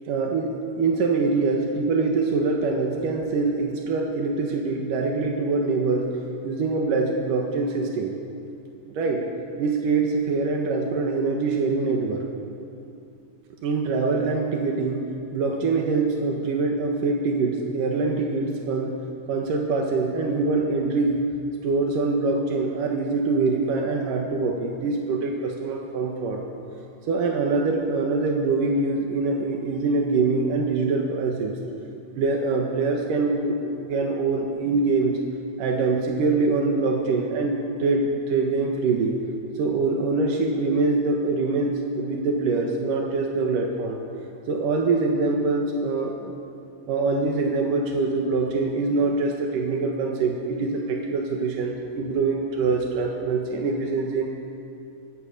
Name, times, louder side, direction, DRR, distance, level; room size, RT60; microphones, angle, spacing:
voice 1, 0.1-6.1 6.4-8.2 8.9-9.2 9.6-12.3 13.6-15.1 15.3-19.0 19.3-21.3 21.6-26.4 27.1-31.5 32.2-35.2 35.6-39.1 39.6-44.0 44.5-46.3 46.9-54.3, right 3 dB, 90° right, 1 dB, 3.2 m, -24 dB
24.5 x 20.5 x 6.8 m, 2.7 s
omnidirectional pair, 3.7 m